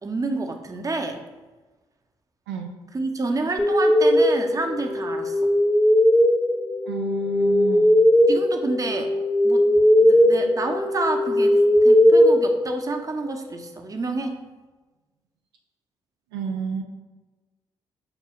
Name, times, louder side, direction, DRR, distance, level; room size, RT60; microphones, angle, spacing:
voice 1, 0.0-1.2 2.9-5.5 8.3-9.7 10.0-14.4, right 3 dB, 30° right, 5 dB, 0.6 m, -29 dB
sound 1, 3.6-13.3, left 1 dB, 15° left, 0.7 m, -19 dB
voice 2, 6.8-7.9 16.3-16.8, right 3 dB, 90° right, 2 dB, 0.4 m, -30 dB
5.7 x 2.1 x 3.5 m, 1.2 s
hypercardioid pair, 45°, 12 cm